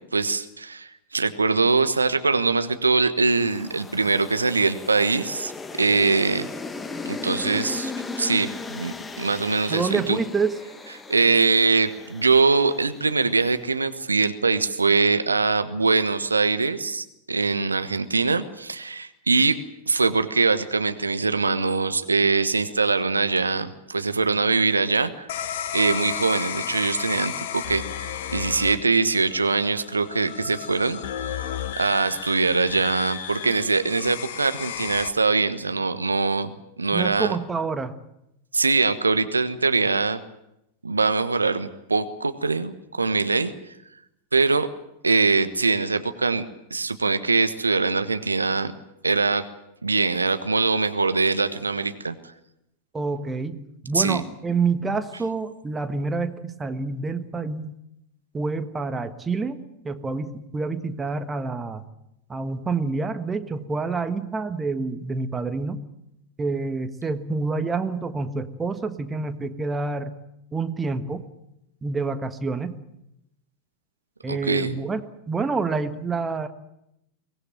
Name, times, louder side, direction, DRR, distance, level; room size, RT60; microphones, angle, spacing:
voice 1, 0.1-6.5 7.1-10.2 11.1-19.6 19.9-25.3 25.7-31.0 31.8-36.5 36.8-37.3 38.5-40.2 40.8-43.5 44.3-44.7 45.0-48.7 49.0-49.5 49.8-52.1 53.9-54.2 74.3-74.8, right 4 dB, 80° right, 11 dB, 1.2 m, -22 dB
sound 1, 3.3-13.6, left 3 dB, 15° left, 1.3 m, -37 dB
voice 2, 9.7-10.6 36.9-37.9 52.9-57.7 58.3-61.8 62.3-65.8 66.4-70.1 70.5-71.3 71.8-72.8 74.2-75.0 75.3-76.5, right 4 dB, 15° right, 9 dB, 1.5 m, -27 dB
sound 2, 25.3-35.1, left 10 dB, 55° left, 1.3 m, -33 dB
23.0 x 18.5 x 9.0 m, 0.83 s
figure-of-eight pair, 90°, 0 cm